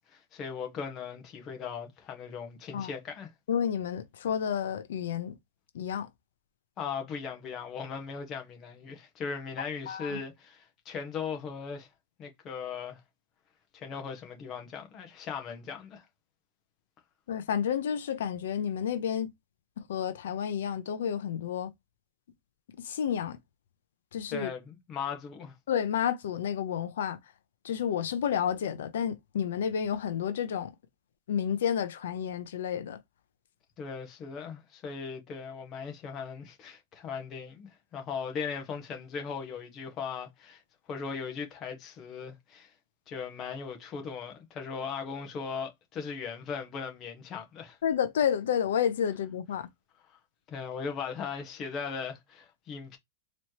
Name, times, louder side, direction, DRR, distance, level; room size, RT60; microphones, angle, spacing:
voice 1, 0.1-3.3 6.8-11.9 12.2-13.0 13.7-16.0 24.3-25.5 33.8-40.6 40.9-42.7 43.1-47.8 50.5-53.0, left 6 dB, 25° left, 1.2 m, -38 dB
voice 2, 3.5-5.4 5.7-6.1 9.9-10.2 17.3-19.3 19.9-21.7 22.8-23.4 24.1-24.5 25.7-27.2 27.6-30.7 31.3-33.0 47.8-49.7, left 8 dB, 85° left, 0.7 m, -30 dB
4.2 x 3.1 x 2.8 m
supercardioid pair, 170°, 0 cm